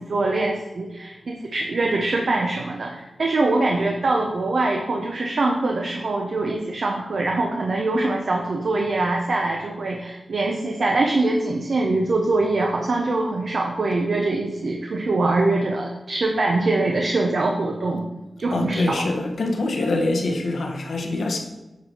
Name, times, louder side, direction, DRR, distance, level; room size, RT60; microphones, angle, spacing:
voice 1, 0.0-18.1 18.4-19.1, right 2 dB, 70° right, 0 dB, 0.8 m, -23 dB
voice 2, 18.5-21.4, left 2 dB, 85° left, 2 dB, 1.1 m, -24 dB
8.4 x 4.4 x 4.4 m, 1.0 s
wide cardioid pair, 90°, 0 cm